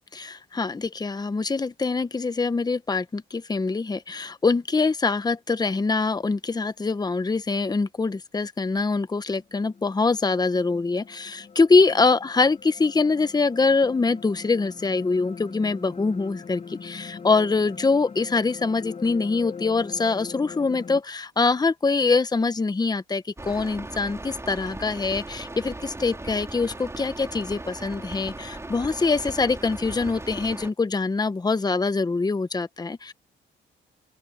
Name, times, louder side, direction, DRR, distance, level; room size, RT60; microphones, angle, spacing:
voice 1, 0.1-33.1, left 4 dB, 20° left, 1.0 m, -24 dB
sound 1, 9.4-21.0, left 5 dB, 35° left, 1.8 m, -42 dB
sound 2, 23.4-30.7, right 2 dB, 15° right, 3.9 m, -38 dB
open air
cardioid pair, 90°, 20 cm